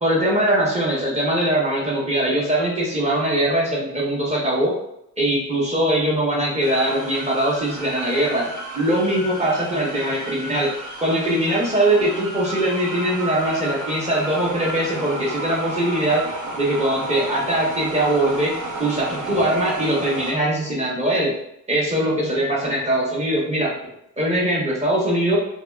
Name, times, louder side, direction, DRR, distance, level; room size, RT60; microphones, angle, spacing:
voice 1, 0.0-4.7 5.2-8.4 8.7-10.7 11.0-16.2 16.6-21.3 21.7-23.8 24.2-25.4, right 1 dB, 20° right, -4 dB, 1.0 m, -21 dB
sound 1, 6.6-20.3, right 1 dB, 55° right, 0.9 m, -32 dB
2.7 x 2.4 x 2.3 m, 0.79 s
supercardioid pair, 80°, 37 cm